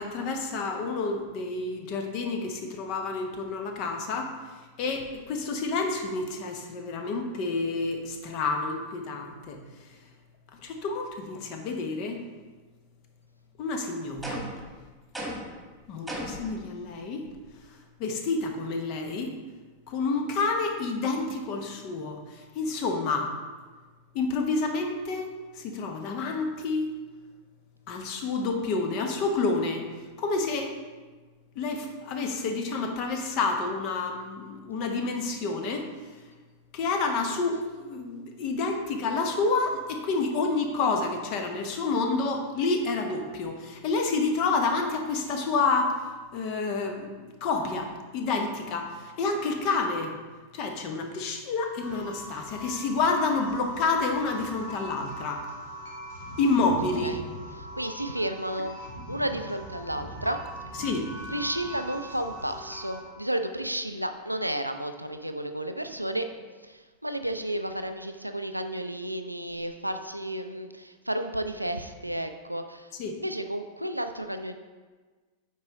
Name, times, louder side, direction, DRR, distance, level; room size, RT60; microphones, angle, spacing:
voice 1, 0.0-4.3 4.8-9.9 10.6-12.2 13.6-14.5 15.9-17.3 18.0-19.3 19.9-23.3 24.1-25.3 25.5-26.9 27.9-29.9 30.2-30.7 31.6-35.9 36.7-46.0 46.3-50.2 50.5-55.5 56.4-57.2 60.8-61.1 72.9-73.2, left 3 dB, 40° left, 4 dB, 0.9 m, -29 dB
sound 1, 14.2-14.7 15.1-15.6 16.1-16.5, equal, 5° right, 1.7 m, -35 dB
sound 2, 51.8-63.0, right 1 dB, 60° left, 1.6 m, -41 dB
voice 2, 57.7-58.8 59.1-60.4 61.3-66.3 66.6-72.9 73.2-74.5, right 1 dB, 90° right, 7 dB, 0.4 m, -32 dB
8.8 x 4.6 x 3.0 m, 1.4 s
figure-of-eight pair, 90°, 0 cm